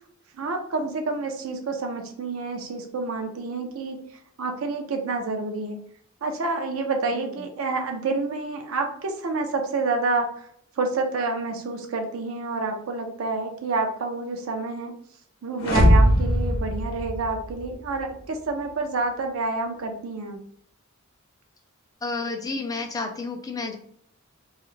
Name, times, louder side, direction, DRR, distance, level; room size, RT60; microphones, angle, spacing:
voice 1, 0.3-4.0 4.4-5.8 6.2-10.5 10.8-14.9 15.4-20.4, right 3 dB, 70° right, 5 dB, 0.4 m, -28 dB
sound 1, 15.6-17.7, equal, 90° left, 0.6 m, -20 dB
voice 2, 22.0-23.8, left 3 dB, 15° left, 3 dB, 0.4 m, -31 dB
2.3 x 2.0 x 3.0 m, 0.64 s
head